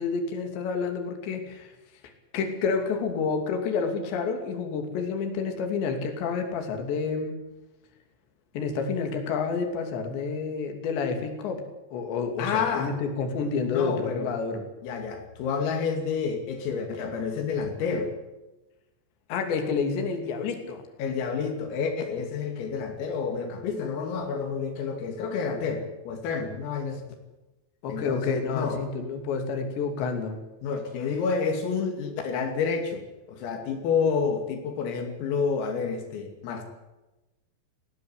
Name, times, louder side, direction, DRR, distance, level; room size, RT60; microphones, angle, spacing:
voice 1, 0.0-1.7 2.0-7.4 8.5-11.6 11.9-14.7 19.3-20.8 27.8-30.4, left 5 dB, 60° left, 5 dB, 4.8 m, -29 dB
voice 2, 12.4-13.0 13.7-14.3 14.8-18.1 21.0-27.0 27.9-28.8 30.6-36.6, left 5 dB, 80° left, 5 dB, 5.2 m, -29 dB
19.0 x 17.5 x 9.8 m, 1.0 s
omnidirectional pair, 5.9 m